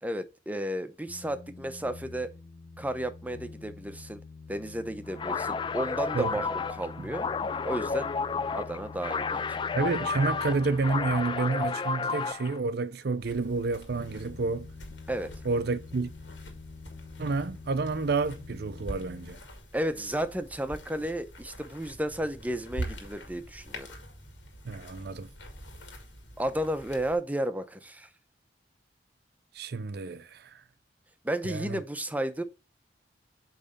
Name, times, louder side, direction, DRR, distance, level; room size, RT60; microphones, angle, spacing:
voice 1, 0.0-2.3 2.8-4.2 4.5-7.3 7.7-8.1 8.5-9.6 15.1-15.3 19.7-23.9 26.4-28.1 31.2-32.4, right 1 dB, 10° right, 0.7 m, -33 dB
sound 1, 1.1-11.7 13.9-19.3, left 4 dB, 45° left, 0.8 m, -47 dB
sound 2, 5.1-12.6, left 5 dB, 25° left, 0.3 m, -32 dB
voice 2, 9.7-14.7 15.4-16.1 17.2-19.4 24.6-25.3 29.5-30.6 31.4-31.8, right 3 dB, 60° right, 0.6 m, -29 dB
sound 3, 13.2-27.2, right 1 dB, 85° left, 2.2 m, -45 dB
8.5 x 3.2 x 5.4 m
head